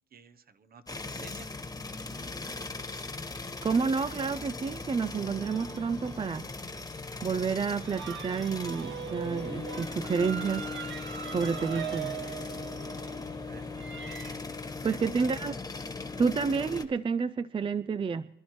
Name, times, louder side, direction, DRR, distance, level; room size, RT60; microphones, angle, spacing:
voice 1, 0.1-1.5 1.9-2.0 2.7-2.9 13.5-13.7 14.6-15.5, right 6 dB, 50° right, 11 dB, 1.0 m, -51 dB
sound 1, 0.9-16.9, left 3 dB, 20° left, 1.5 m, -39 dB
voice 2, 3.6-6.4 7.2-10.7 11.3-12.2 14.8-15.6 16.2-18.3, right 5 dB, 25° right, 15 dB, 0.4 m, -29 dB
sound 2, 5.4-14.3, right 8 dB, 70° right, 1.2 m, -42 dB
25.5 x 11.5 x 3.1 m, 0.88 s
cardioid pair, 90°, 20 cm